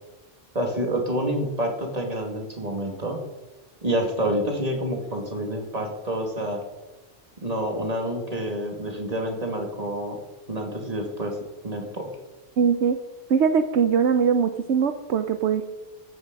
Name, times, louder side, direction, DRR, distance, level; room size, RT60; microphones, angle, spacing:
voice 1, 0.5-3.2 3.8-6.6 7.4-10.2 10.5-11.4 11.6-12.0, right 1 dB, 30° right, 2 dB, 2.4 m, -28 dB
voice 2, 12.6-13.0 13.3-15.7, right 6 dB, 70° right, 8 dB, 1.0 m, -21 dB
15.0 x 8.9 x 5.2 m, 1.1 s
omnidirectional pair, 1.2 m